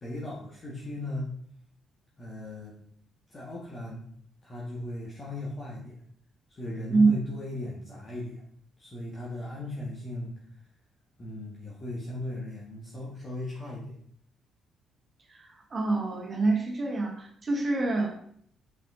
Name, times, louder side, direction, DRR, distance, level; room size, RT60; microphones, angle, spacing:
voice 1, 0.0-1.3 2.2-2.7 3.3-4.1 4.4-6.0 6.5-8.4 8.8-10.3 11.2-13.9, left 1 dB, 35° left, -4 dB, 1.5 m, -37 dB
voice 2, 15.3-18.1, right 3 dB, 35° right, 0 dB, 1.4 m, -26 dB
5.5 x 5.2 x 3.7 m, 0.64 s
cardioid pair, 90°, 0 cm